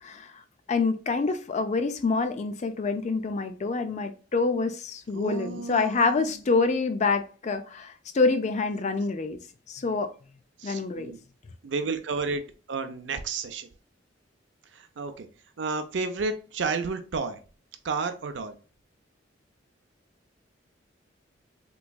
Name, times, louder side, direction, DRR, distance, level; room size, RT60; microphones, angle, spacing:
voice 1, 0.0-0.4 0.7-9.4 9.7-10.1 10.6-11.1, left 4 dB, 40° left, 0.4 m, -26 dB
voice 2, 5.1-6.2 10.6-11.2 11.6-12.4 12.7-13.7 14.7-15.3 15.6-17.4 17.8-18.5, right 4 dB, 70° right, 0.5 m, -31 dB
3.4 x 3.0 x 2.2 m
head